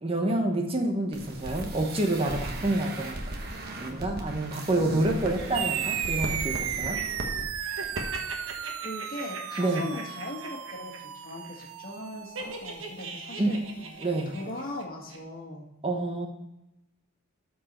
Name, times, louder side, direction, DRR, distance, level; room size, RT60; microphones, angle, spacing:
voice 1, 0.0-3.2 3.8-7.0 9.6-9.9 13.4-13.5 14.0-14.3 15.8-16.3, right 2 dB, 30° right, 2 dB, 1.0 m, -28 dB
sound 1, 1.1-7.4 7.8-8.0 8.3-8.4, right 1 dB, 50° right, 1.2 m, -37 dB
sound 2, 5.4-7.0 7.5-11.0 11.2-11.6 12.3-14.8 15.1-15.2, right 3 dB, 70° right, 1.4 m, -41 dB
sound 3, 5.5-14.4, right 9 dB, 90° right, 0.5 m, -35 dB
voice 2, 8.8-13.6 14.3-15.7, left 1 dB, 45° left, 0 dB, 1.7 m, -39 dB
13.0 x 4.7 x 4.3 m, 0.92 s
head